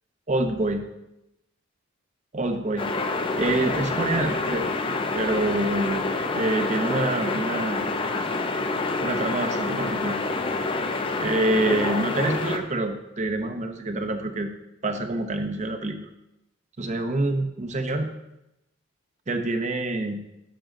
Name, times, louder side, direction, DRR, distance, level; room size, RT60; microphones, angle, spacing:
voice 1, 0.3-0.8 2.3-2.9 3.4-4.7 5.1-6.0 6.3-7.8 9.0-10.2 11.2-14.5 14.8-16.1 16.8-18.1 19.3-20.2, right 2 dB, 35° right, 6 dB, 0.6 m, -26 dB
sound 1, 2.8-12.6, left 3 dB, 25° left, 0.5 m, -27 dB
10.0 x 6.2 x 3.8 m, 0.89 s
head